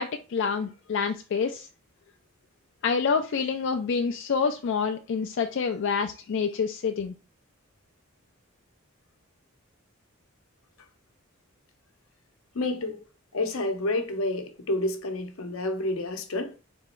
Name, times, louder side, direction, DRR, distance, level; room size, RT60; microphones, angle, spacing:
voice 1, 0.0-1.7 2.8-7.1, left 5 dB, 60° left, 0.4 m, -27 dB
voice 2, 12.5-13.0 13.3-16.6, left 2 dB, 85° left, 0.8 m, -29 dB
3.6 x 3.0 x 4.3 m
head